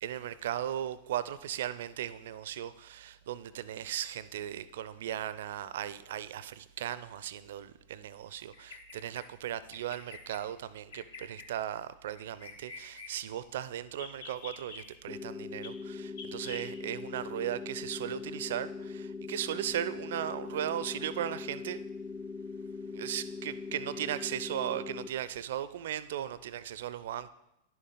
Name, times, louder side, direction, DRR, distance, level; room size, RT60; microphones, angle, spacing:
voice 1, 0.0-21.9 22.9-27.3, right 11 dB, 60° right, 0.4 m, -37 dB
Bird vocalization bird call bird song, 8.5-9.3 9.7-10.4 10.9-11.5 12.1-13.1 13.9-14.8 15.6-15.7 16.2-16.7, left 4 dB, 65° left, 1.0 m, -46 dB
sound 1, 15.1-25.1, left 4 dB, 20° left, 0.4 m, -41 dB
10.5 x 6.9 x 3.9 m
figure-of-eight pair, 90°, 0 cm